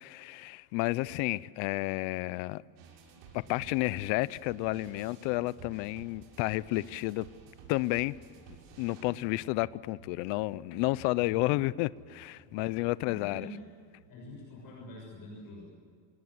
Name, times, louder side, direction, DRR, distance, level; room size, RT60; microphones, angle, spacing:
voice 1, 0.0-2.6 3.3-7.3 7.7-8.2 8.8-13.5, left 20 dB, 75° left, 0.7 m, -31 dB
sound 1, 2.8-14.1, right 5 dB, 85° right, 6.9 m, -54 dB
voice 2, 11.1-11.5 12.5-13.6 14.0-15.7, left 1 dB, 50° left, 6.8 m, -47 dB
27.0 x 19.5 x 7.8 m
cardioid pair, 135°, 45 cm